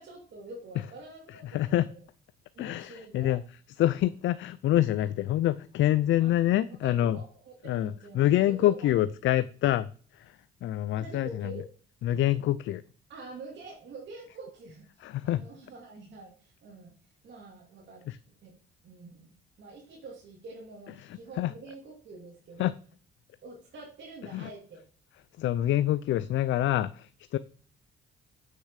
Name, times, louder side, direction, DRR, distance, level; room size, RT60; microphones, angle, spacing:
voice 1, 0.0-2.0 2.5-3.4 6.2-6.4 6.8-8.9 11.0-11.6 13.1-16.9 17.2-18.0 18.4-18.6 18.8-22.7 23.4-24.8, right 2 dB, 65° right, 2.7 m, -46 dB
voice 2, 1.4-1.9 2.6-3.4 3.8-7.2 7.6-9.9 10.6-11.5 12.0-12.8 15.0-15.4 18.1-18.2 21.4-21.5 22.6-22.7 24.3-24.5 25.4-27.4, left 13 dB, 75° left, 0.5 m, -26 dB
8.8 x 6.6 x 4.8 m
cardioid pair, 90°, 20 cm